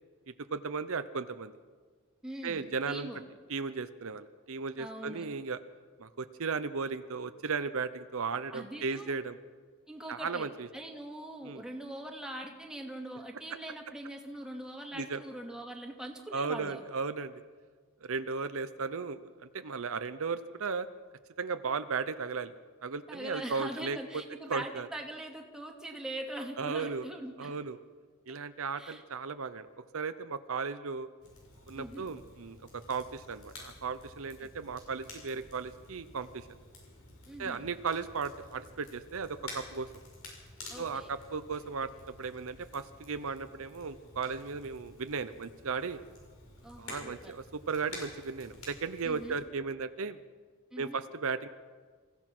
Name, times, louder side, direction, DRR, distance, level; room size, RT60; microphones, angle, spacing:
voice 1, 0.5-1.5 2.4-3.1 3.5-5.6 6.0-9.4 10.1-10.7 11.4-11.6 14.9-15.2 16.3-17.4 18.0-20.9 21.4-22.5 22.8-24.0 24.5-24.9 26.6-27.0 27.4-27.8 28.3-29.7 29.9-31.1 31.7-36.5 37.4-39.9 40.8-46.0 46.8-50.2 50.8-51.5, right 5 dB, 65° right, 11 dB, 0.8 m, -36 dB
voice 2, 2.2-3.2 4.8-5.3 8.5-9.2 9.9-10.5 10.7-16.8 23.1-27.5 28.8-29.0 31.7-32.1 34.4-34.5 37.3-37.7 40.7-41.1 46.6-47.3 49.0-49.4 50.7-51.0, right 1 dB, 5° right, 1 dB, 2.4 m, -42 dB
Crackle, 31.2-49.4, left 2 dB, 75° left, 7.3 m, -51 dB
27.5 x 16.0 x 6.1 m, 1.5 s
head